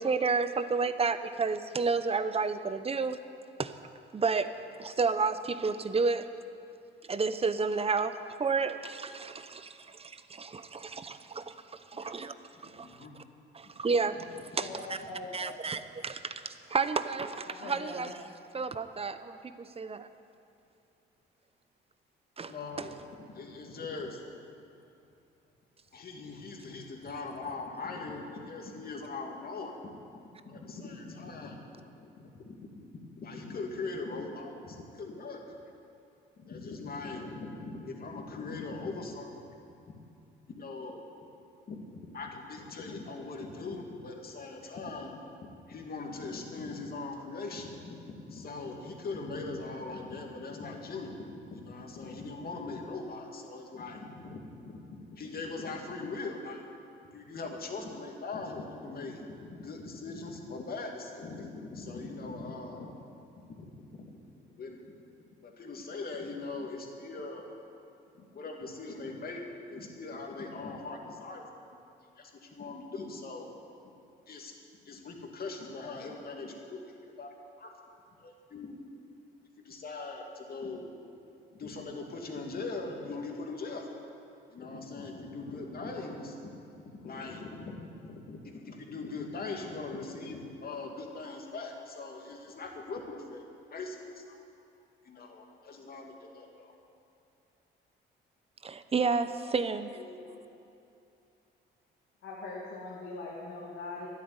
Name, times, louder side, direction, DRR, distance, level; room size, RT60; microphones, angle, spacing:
voice 1, 0.0-3.2 3.6-3.7 4.1-4.5 4.8-6.2 7.1-11.5 11.9-12.3 12.6-12.9 13.5-14.2 14.5-15.0 15.3-18.1 18.5-20.1 22.4-22.5 98.6-99.9, right 4 dB, 30° right, 11 dB, 0.8 m, -31 dB
voice 2, 12.8-13.1 14.7-14.8 22.5-23.0 23.3-24.2 25.9-29.8 30.4-31.6 32.3-32.9 33.2-35.6 36.4-39.3 40.5-41.0 41.7-48.0 48.3-56.6 57.1-59.3 59.5-63.0 63.6-63.7 64.1-64.2 64.5-64.9 65.4-67.5 68.2-71.4 72.2-73.5 74.3-74.5 74.8-76.8 77.2-77.7 78.2-78.8 79.6-80.9 81.5-84.0 84.5-86.4 86.7-93.4 93.7-94.4 95.0-96.8, left 3 dB, 50° left, 1 dB, 2.5 m, -41 dB
voice 3, 14.6-15.9 17.4-18.2 99.6-100.4 102.2-104.1, left 3 dB, 75° left, -4 dB, 2.3 m, -42 dB
12.5 x 11.0 x 9.7 m, 2.7 s
cardioid pair, 90°, 20 cm